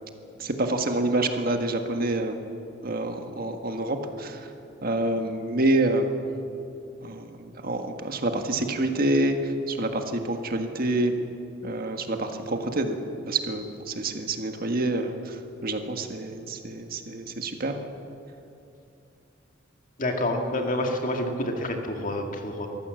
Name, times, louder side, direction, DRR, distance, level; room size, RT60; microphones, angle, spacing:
voice 1, 0.4-2.4 2.8-4.5 4.8-6.1 7.0-11.1 11.6-13.0 13.3-17.8, right 2 dB, 50° right, 5 dB, 1.6 m, -27 dB
voice 2, 20.0-22.7, left 1 dB, 45° left, 3 dB, 2.2 m, -28 dB
23.5 x 14.5 x 7.8 m, 2.7 s
head